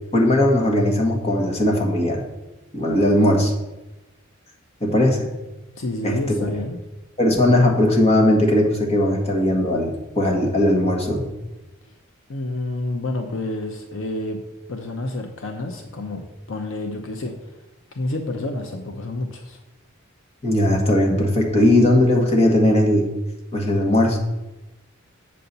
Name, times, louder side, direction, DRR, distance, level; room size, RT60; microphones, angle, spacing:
voice 1, 0.1-2.2 2.7-3.5 4.8-5.3 6.0-6.1 7.2-11.3 20.4-23.1 23.5-24.2, left 1 dB, 30° left, 0 dB, 1.5 m, -18 dB
voice 2, 5.8-6.8 11.8-11.9 12.3-17.5 17.9-19.6, left 2 dB, 70° left, 5 dB, 0.7 m, -29 dB
7.6 x 4.2 x 6.7 m, 1.0 s
head